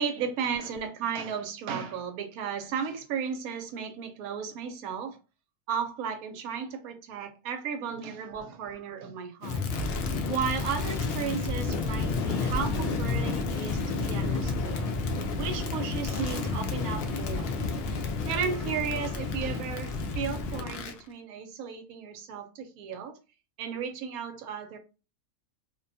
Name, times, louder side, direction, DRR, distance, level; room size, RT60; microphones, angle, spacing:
voice 1, 0.0-5.2 5.7-9.7 10.3-14.8 15.4-17.6 18.3-23.2 23.6-24.8, right 6 dB, 75° right, 1.0 m, -34 dB
Crackle, 9.4-21.0, left 3 dB, 85° left, 0.5 m, -30 dB
2.6 x 2.2 x 2.6 m
omnidirectional pair, 1.6 m